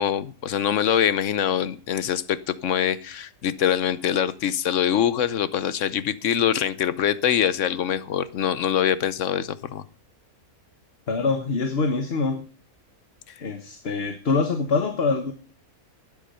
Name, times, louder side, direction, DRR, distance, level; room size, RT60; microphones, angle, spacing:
voice 1, 0.0-9.8, left 9 dB, 60° left, 15 dB, 1.0 m, -24 dB
voice 2, 11.1-12.4 13.4-15.3, left 4 dB, 45° left, 7 dB, 1.3 m, -24 dB
12.5 x 9.8 x 5.5 m, 0.37 s
omnidirectional pair, 1.6 m